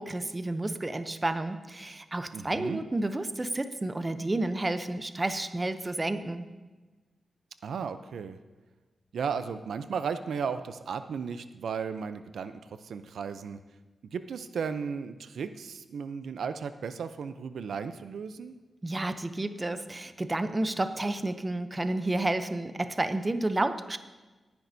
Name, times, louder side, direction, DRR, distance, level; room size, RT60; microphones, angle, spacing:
voice 1, 0.0-6.4 18.8-24.0, right 2 dB, 20° right, 10 dB, 0.6 m, -31 dB
voice 2, 2.3-2.8 7.6-8.4 9.1-13.6 14.1-18.5, right 6 dB, 85° right, 11 dB, 0.5 m, -35 dB
19.0 x 10.5 x 2.7 m, 1.2 s
wide cardioid pair, 130°, 0 cm